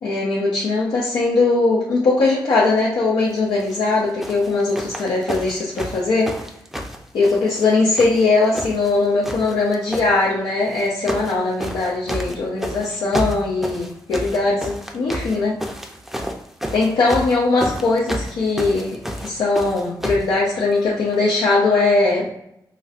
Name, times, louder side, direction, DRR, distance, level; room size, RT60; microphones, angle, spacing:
voice 1, 0.0-6.3 7.1-15.5 16.7-22.3, left 3 dB, 90° left, -6 dB, 0.6 m, -20 dB
sound 1, 3.6-3.8 4.2-7.7 8.0-8.9 9.2-10.1 10.7-11.3 11.6-20.3 21.1-21.2, equal, 5° right, 0.4 m, -29 dB
4.0 x 2.1 x 2.4 m, 0.78 s
cardioid pair, 70°, 8 cm